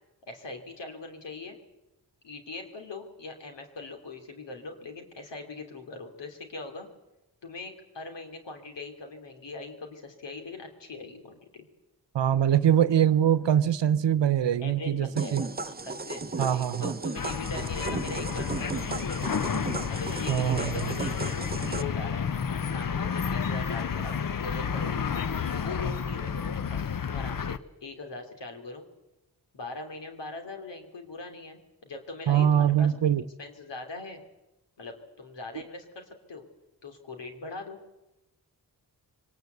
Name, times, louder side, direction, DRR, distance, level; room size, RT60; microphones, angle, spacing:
voice 1, 0.3-1.6 2.2-6.9 7.4-11.7 14.6-19.2 19.9-22.3 22.5-25.0 25.5-28.8 29.5-32.9 33.4-34.2 34.8-36.4 36.8-37.8, left 3 dB, 90° left, 3.0 m, -41 dB
voice 2, 12.1-15.4 16.4-16.9 20.3-20.9 32.3-33.2, right 9 dB, 85° right, 0.9 m, -23 dB
sound 1, 15.2-21.8, right 3 dB, 25° right, 0.7 m, -35 dB
sound 2, 17.2-27.6, left 6 dB, 50° left, 0.9 m, -31 dB
24.5 x 19.0 x 8.1 m
cardioid pair, 45°, 42 cm